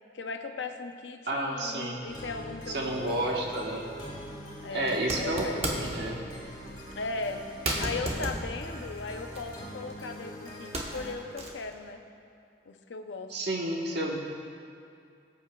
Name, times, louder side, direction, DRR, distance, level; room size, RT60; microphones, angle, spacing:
voice 1, 0.1-3.5 4.6-5.9 7.0-7.4 7.8-12.0 12.7-13.3, left 3 dB, 75° left, 6 dB, 0.7 m, -38 dB
voice 2, 1.3-2.1 2.7-3.9 4.7-6.2 13.3-14.2, right 1 dB, 65° right, -1 dB, 1.3 m, -31 dB
sound 1, 2.1-11.1, equal, 25° left, 1.9 m, -43 dB
sound 2, 3.9-4.1 4.8-6.1 6.7-6.8 7.2-7.3 7.6-10.2 10.5-11.7, right 1 dB, 35° right, 1.0 m, -34 dB
19.0 x 8.3 x 2.3 m, 2.4 s
head